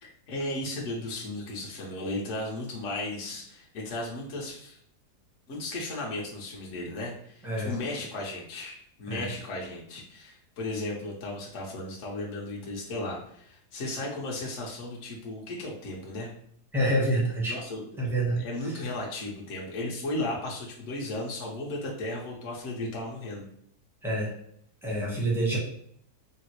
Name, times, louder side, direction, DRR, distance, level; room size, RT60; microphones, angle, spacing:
voice 1, 0.0-4.8 5.5-16.3 17.5-23.4, left 2 dB, 55° left, -3 dB, 1.0 m, -35 dB
voice 2, 7.4-7.7 9.1-9.3 16.7-17.6 18.0-18.8 24.0-24.3 24.8-25.6, right 1 dB, ahead, -5 dB, 0.5 m, -27 dB
3.7 x 2.0 x 2.9 m, 0.67 s
omnidirectional pair, 1.8 m